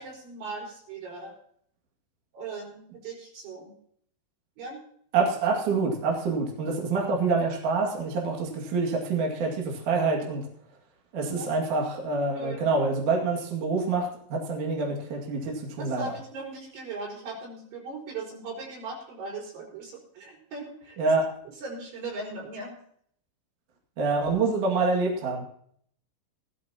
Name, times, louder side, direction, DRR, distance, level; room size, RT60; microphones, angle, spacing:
voice 1, 0.0-1.3 2.3-3.8 4.6-4.8 8.5-8.6 11.4-11.5 12.4-12.7 15.8-21.0 21.6-22.8, right 3 dB, 65° right, -1 dB, 7.1 m, -39 dB
voice 2, 5.1-10.4 11.1-16.1 21.0-21.2 24.0-25.4, right 4 dB, 50° right, -1 dB, 2.9 m, -26 dB
18.0 x 14.5 x 2.9 m, 0.63 s
omnidirectional pair, 6.0 m